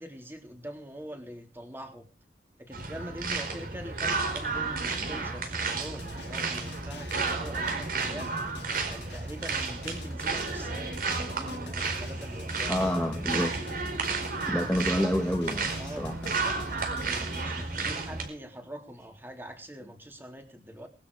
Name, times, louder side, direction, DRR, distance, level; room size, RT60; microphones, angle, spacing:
voice 1, 0.0-2.1 2.6-10.9 11.3-12.7 15.8-17.0 17.4-20.9, equal, 10° right, 4 dB, 3.5 m, -44 dB
sound 1, 2.7-18.3, right 4 dB, 50° right, 4.7 m, -32 dB
Drum, 5.8-17.4, left 3 dB, 80° left, 4.5 m, -48 dB
voice 2, 12.7-13.6 14.5-16.3, equal, 5° left, 1 dB, 1.9 m, -28 dB
21.0 x 12.5 x 4.9 m, 0.34 s
head